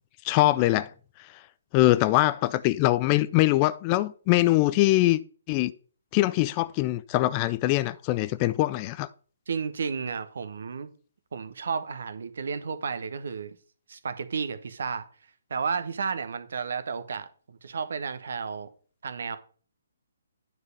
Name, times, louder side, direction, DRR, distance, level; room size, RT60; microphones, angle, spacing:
voice 1, 0.2-0.9 1.7-5.2 5.5-5.7 6.1-9.1, left 17 dB, 25° left, 0.4 m, -23 dB
voice 2, 9.5-10.9 11.3-13.5 13.9-15.1 15.5-18.7 19.0-19.4, right 5 dB, 60° right, 0.9 m, -32 dB
9.6 x 4.9 x 5.3 m
figure-of-eight pair, 135°, 0 cm